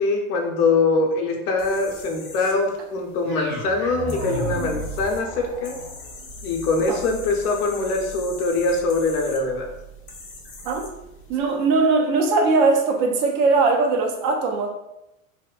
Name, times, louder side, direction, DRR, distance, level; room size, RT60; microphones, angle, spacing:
voice 1, 0.0-5.8 6.4-9.7, left 3 dB, 85° left, 2 dB, 0.7 m, -23 dB
sound 1, 1.6-11.6, left 4 dB, 30° left, 0.4 m, -43 dB
sound 2, 3.2-11.4, right 1 dB, 85° right, 1.3 m, -36 dB
voice 2, 11.3-14.7, right 3 dB, 40° right, 3 dB, 0.4 m, -20 dB
2.7 x 2.1 x 2.3 m, 0.89 s
supercardioid pair, 120°, 44 cm